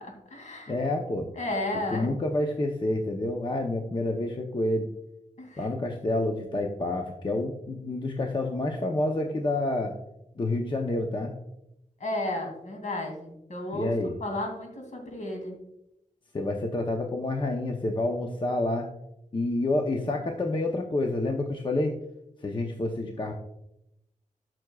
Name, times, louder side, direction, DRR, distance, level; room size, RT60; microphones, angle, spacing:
voice 1, 0.0-0.8 1.4-2.1 5.4-5.6 12.0-13.9 14.2-15.6, left 1 dB, 65° left, 1 dB, 2.5 m, -33 dB
voice 2, 0.7-1.3 1.9-4.9 5.6-9.9 10.4-11.3 13.7-14.2 16.3-18.9 19.3-21.9 22.4-23.3, left 2 dB, 35° left, 2 dB, 0.7 m, -28 dB
12.5 x 6.1 x 2.3 m, 0.85 s
wide cardioid pair, 105°, 14 cm